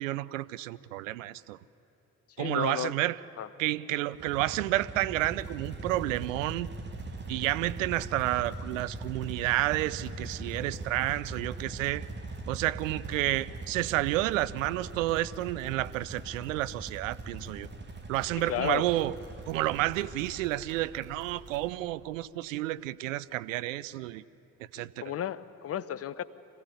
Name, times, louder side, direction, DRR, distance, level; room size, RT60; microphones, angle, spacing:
voice 1, 0.0-1.6 2.4-3.2 3.6-6.7 7.3-12.1 12.5-17.7 18.1-19.1 19.5-24.2 24.7-25.0, right 16 dB, 70° right, 17 dB, 0.5 m, -30 dB
voice 2, 2.4-3.0 3.4-3.5 18.3-18.8 24.8-26.2, left 10 dB, 35° left, 17 dB, 0.8 m, -33 dB
sound 1, 4.1-20.8, right 3 dB, 25° right, 1.9 m, -41 dB
sound 2, 5.1-21.6, right 2 dB, 90° right, 7.9 m, -49 dB
24.5 x 15.5 x 9.5 m, 2.9 s
figure-of-eight pair, 45°, 40 cm